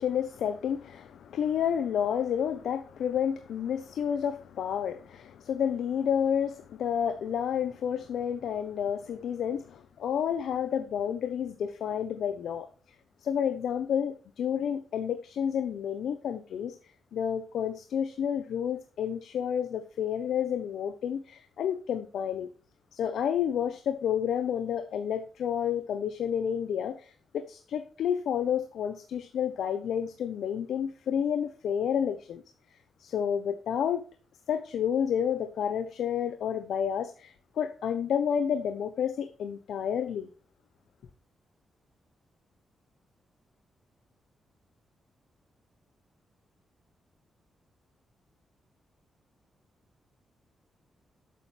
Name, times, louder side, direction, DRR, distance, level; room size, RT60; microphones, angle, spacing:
voice 1, 0.0-12.7 13.2-16.8 17.1-22.5 22.9-32.4 33.0-34.1 34.5-40.3, left 8 dB, 85° left, 1.0 m, -30 dB
12.0 x 8.9 x 3.5 m
wide cardioid pair, 125°, 0 cm